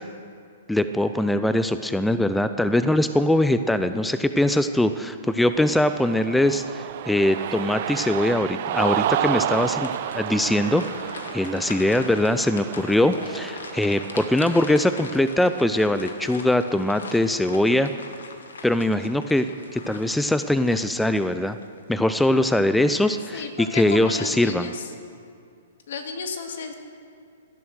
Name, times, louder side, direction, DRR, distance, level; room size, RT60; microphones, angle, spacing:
voice 1, 0.7-10.8 11.3-17.9 18.6-21.6 21.9-24.7, left 1 dB, 5° left, 10 dB, 0.5 m, -22 dB
Cheering, 5.4-14.6, right 11 dB, 55° right, 0.6 m, -30 dB
sound 1, 9.2-21.8 22.3-22.4 23.0-23.5, left 4 dB, 85° left, 1.6 m, -41 dB
voice 2, 23.3-24.9 25.9-26.7, left 5 dB, 70° left, 5 dB, 2.0 m, -33 dB
17.5 x 11.0 x 6.4 m, 2.4 s
hypercardioid pair, 135°, 0 cm